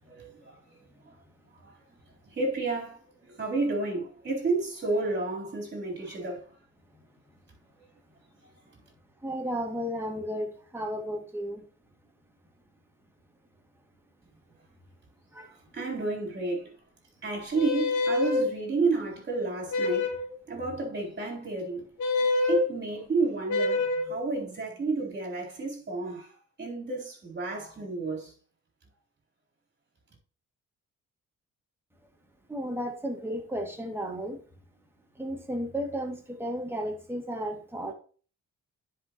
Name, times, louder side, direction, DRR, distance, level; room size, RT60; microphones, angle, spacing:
voice 1, 0.1-0.6 1.6-1.7 2.3-6.4 15.7-16.7 17.2-20.1 20.5-21.8 22.5-26.3 26.6-28.3, right 3 dB, 35° right, 3.9 m, -31 dB
voice 2, 9.2-11.6 15.3-15.5 32.5-34.4 35.2-37.9, equal, 10° right, 2.3 m, -33 dB
sound 1, 17.5-18.5 19.7-20.3 22.0-22.6 23.5-24.1, left 3 dB, 75° left, 1.6 m, -26 dB
10.0 x 5.3 x 3.0 m
cardioid pair, 90°, 30 cm